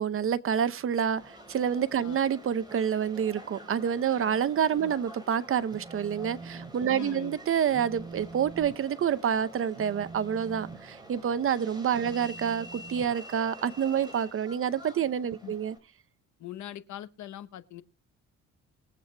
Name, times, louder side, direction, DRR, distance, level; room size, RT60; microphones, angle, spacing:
voice 1, 0.0-15.8, right 8 dB, 45° right, 0.7 m, -28 dB
Subway metro underground, 1.2-15.8, right 1 dB, 15° right, 4.2 m, -48 dB
Telephone, 5.7-6.7 7.1-7.3 7.7-13.8, right 4 dB, 90° right, 1.9 m, -46 dB
voice 2, 6.9-7.4 12.0-12.2 15.4-15.5 16.4-17.8, left 11 dB, 70° left, 1.0 m, -42 dB
22.0 x 8.1 x 2.2 m
cardioid pair, 90°, 30 cm